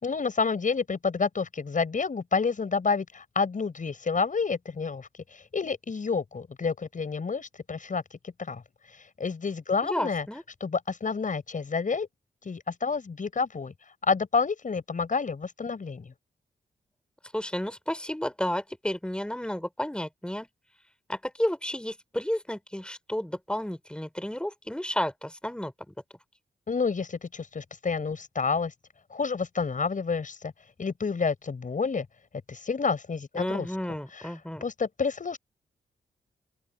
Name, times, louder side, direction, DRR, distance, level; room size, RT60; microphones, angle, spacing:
voice 1, 0.0-8.6 9.2-10.3 10.6-12.1 12.5-13.7 14.0-16.1 26.7-28.7 29.1-30.5 30.8-32.1 32.5-33.7 34.1-34.2 34.6-35.4, left 5 dB, 50° left, 7.0 m, -29 dB
voice 2, 9.8-10.4 17.3-20.5 21.1-25.9 33.3-34.6, left 1 dB, 5° left, 4.8 m, -32 dB
open air
supercardioid pair, 50°, 17 cm